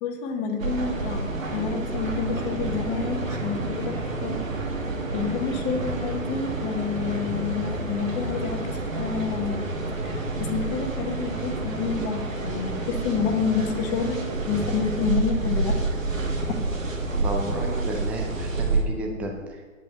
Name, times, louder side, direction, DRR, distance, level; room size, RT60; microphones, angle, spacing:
voice 1, 0.0-4.4 5.1-9.6 10.0-10.1 10.4-15.7, left 6 dB, 25° left, 4 dB, 1.4 m, -29 dB
sound 1, 0.6-18.8, right 3 dB, 75° right, 2.1 m, -29 dB
voice 2, 17.2-19.6, right 1 dB, 5° right, 1 dB, 0.5 m, -32 dB
9.4 x 8.3 x 6.5 m, 1.5 s
figure-of-eight pair, 125°, 40 cm